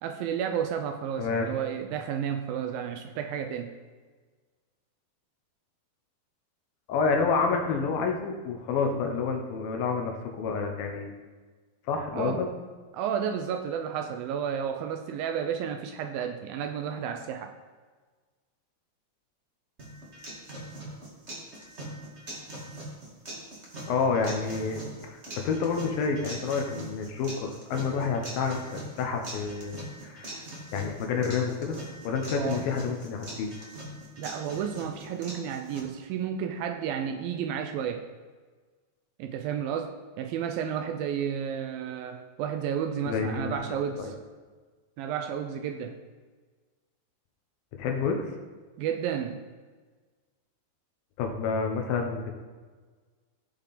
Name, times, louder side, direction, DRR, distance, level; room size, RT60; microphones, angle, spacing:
voice 1, 0.0-3.7 12.1-12.4 12.9-17.5 32.4-32.6 34.2-38.1 39.2-44.2 45.0-46.0 48.8-49.4, right 8 dB, 80° right, 7 dB, 2.2 m, -32 dB
voice 2, 1.2-1.5 6.9-11.1 11.9-12.5 23.9-30.4 30.7-31.8 32.0-33.5 43.0-44.1 47.8-48.3 51.2-52.3, left 5 dB, 70° left, 3 dB, 2.7 m, -29 dB
sound 1, 19.8-35.8, right 1 dB, 25° right, 1.4 m, -42 dB
16.0 x 7.0 x 4.2 m, 1.4 s
omnidirectional pair, 4.5 m